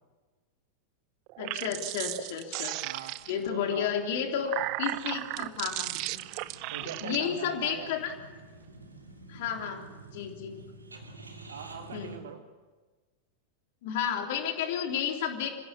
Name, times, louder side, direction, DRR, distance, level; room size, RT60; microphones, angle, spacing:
sound 1, 1.3-3.5 4.2-7.2, right 19 dB, 45° right, 0.6 m, -35 dB
voice 1, 1.4-2.8 3.3-4.5 4.8-6.2 7.0-8.1 9.3-9.8 10.1-10.6 11.9-12.2 13.8-15.5, left 8 dB, 50° left, 3 dB, 3.4 m, -32 dB
voice 2, 2.8-3.1 3.5-3.9 6.7-7.9 11.5-12.4, right 7 dB, 60° right, 7 dB, 1.8 m, -41 dB
sound 2, 3.4-12.2, right 2 dB, 80° right, 2.7 m, -51 dB
26.0 x 16.0 x 8.6 m, 1.3 s
figure-of-eight pair, 90°, 0 cm